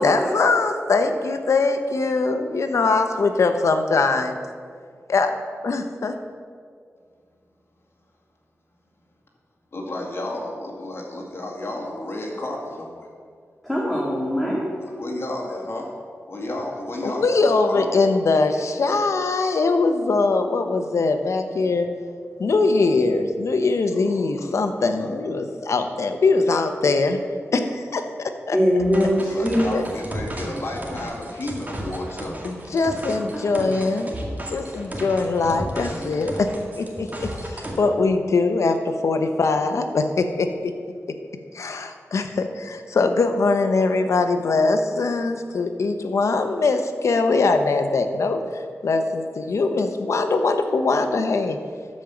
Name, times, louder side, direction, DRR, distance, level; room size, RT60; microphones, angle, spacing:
voice 1, 0.0-4.4 5.1-5.3 5.6-6.2 17.0-21.9 22.4-27.2 27.5-28.6 29.7-29.8 32.4-34.2 34.5-40.7 41.5-51.6, left 3 dB, 75° left, 7 dB, 0.9 m, -22 dB
voice 2, 9.7-13.1 14.8-15.9 16.3-17.8 18.9-19.0 23.9-24.6 24.9-25.2 29.2-32.3, left 1 dB, 55° left, -1 dB, 2.1 m, -32 dB
voice 3, 13.6-14.6 28.5-29.7, equal, 5° left, -5 dB, 2.1 m, -21 dB
sound 1, 28.8-37.8, right 1 dB, 35° right, 2.0 m, -34 dB
12.5 x 5.3 x 7.1 m, 2.1 s
wide cardioid pair, 75°, 5 cm